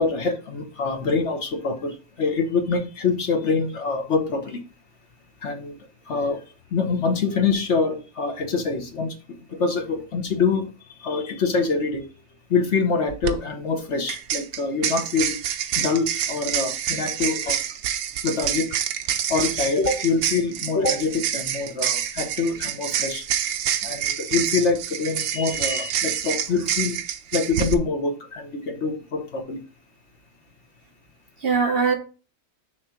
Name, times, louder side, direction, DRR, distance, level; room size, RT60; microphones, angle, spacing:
voice 1, 0.0-4.6 5.4-5.7 6.1-6.4 6.7-12.1 12.5-15.4 15.8-17.6 18.2-18.7 19.3-23.3 23.8-27.0 27.3-29.6, left 4 dB, 55° left, 5 dB, 1.2 m, -25 dB
sound 1, 13.1-13.3 14.1-27.7, right 10 dB, 75° right, 1.1 m, -27 dB
voice 2, 17.0-17.4 31.4-31.9, right 5 dB, 50° right, 4 dB, 0.9 m, -23 dB
6.6 x 3.2 x 5.7 m, 0.34 s
omnidirectional pair, 1.5 m